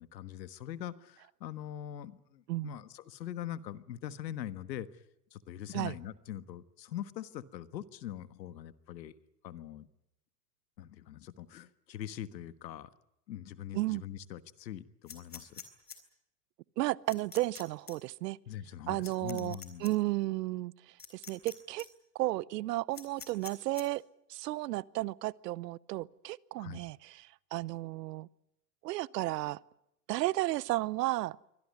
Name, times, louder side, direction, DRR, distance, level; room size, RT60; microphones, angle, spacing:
voice 1, 0.0-4.9 5.3-9.1 9.4-9.9 10.8-12.9 13.3-15.6 18.5-19.9 26.6-26.8, left 11 dB, 90° left, 14 dB, 1.5 m, -42 dB
Zippo scraps, 15.1-16.0 17.1-17.6 17.9-18.0 19.0-19.9 21.0-21.5 21.8-21.9 22.9-23.8, left 7 dB, 20° left, 3.6 m, -46 dB
voice 2, 16.8-18.4 18.9-21.9 22.1-24.0 24.3-28.3 28.8-29.6 30.1-31.4, right 18 dB, 70° right, 23 dB, 0.9 m, -33 dB
24.0 x 17.5 x 9.5 m, 0.83 s
supercardioid pair, 135°, 50 cm